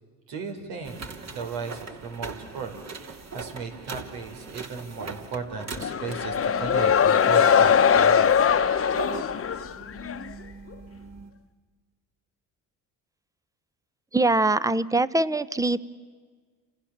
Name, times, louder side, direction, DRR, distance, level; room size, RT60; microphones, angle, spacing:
voice 1, 0.3-1.0 1.3-8.4, right 5 dB, 80° right, 5 dB, 4.4 m, -36 dB
sound 1, 0.8-11.3, right 4 dB, 45° right, 2.8 m, -41 dB
sound 2, 5.8-10.3, left 7 dB, 35° left, 1.1 m, -21 dB
voice 2, 14.1-15.9, right 2 dB, 10° right, 16 dB, 0.9 m, -23 dB
28.5 x 28.0 x 7.4 m, 1.5 s
supercardioid pair, 90°, 37 cm